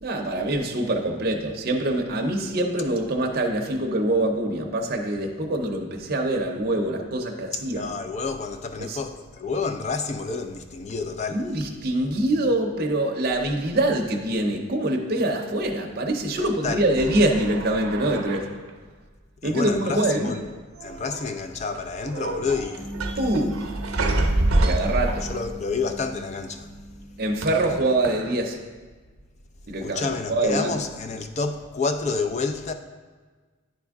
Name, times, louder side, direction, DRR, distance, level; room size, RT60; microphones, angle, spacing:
voice 1, 0.0-7.9 8.8-9.0 11.3-18.4 19.4-20.3 23.2-23.6 24.6-25.2 27.2-28.6 29.7-30.7, right 1 dB, 45° right, 0.6 m, -24 dB
voice 2, 7.5-11.5 16.4-16.8 19.4-20.4 20.8-22.9 23.2-23.4 24.8-24.9 25.2-26.7 29.8-32.7, left 4 dB, 30° left, 0.3 m, -29 dB
sound 1, 17.0-18.7 19.9-20.5 20.7-21.4 21.7-25.7 27.4-28.3, right 2 dB, 90° right, 0.7 m, -28 dB
sound 2, 22.8-28.1, equal, 15° left, 1.0 m, -40 dB
10.0 x 3.4 x 3.5 m
head